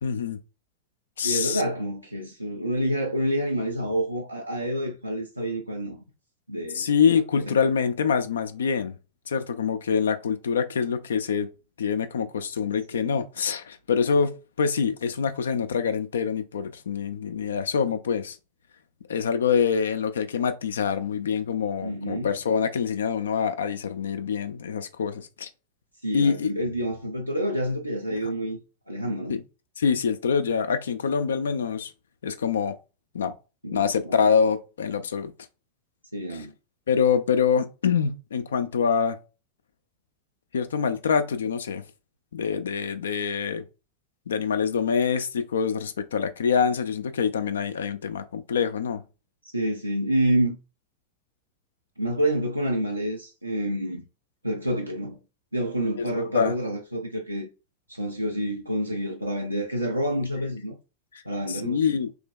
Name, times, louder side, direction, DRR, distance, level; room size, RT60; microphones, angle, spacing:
voice 1, 0.0-0.4 1.2-1.6 6.7-9.0 9.3-11.5 11.8-18.4 19.1-25.5 26.1-26.5 28.2-28.3 29.3-29.4 29.8-31.9 32.2-32.7 33.1-33.3 33.7-35.3 36.3-36.4 36.9-39.2 40.5-41.8 42.3-43.6 44.3-49.0 56.0-56.5 61.5-62.1, left 6 dB, 65° left, 0.4 m, -25 dB
voice 2, 1.2-6.0 6.5-6.8 7.6-7.7 12.9-13.2 21.8-22.3 26.0-28.6 28.9-29.4 33.6-34.2 36.1-36.5 49.5-50.6 52.0-54.0 54.4-55.2 55.5-57.5 57.9-60.8 61.2-61.9, right 1 dB, 90° right, 0.5 m, -28 dB
3.4 x 2.9 x 3.4 m
figure-of-eight pair, 90°, 0 cm